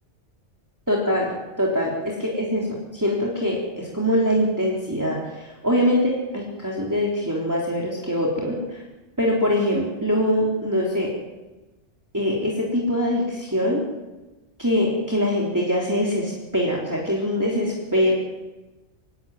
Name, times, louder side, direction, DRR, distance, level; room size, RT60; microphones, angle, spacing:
voice 1, 0.9-8.8 9.2-11.1 12.1-13.8 14.6-18.1, equal, 15° right, -4 dB, 3.6 m, -23 dB
25.5 x 17.5 x 9.3 m, 1.1 s
omnidirectional pair, 1.3 m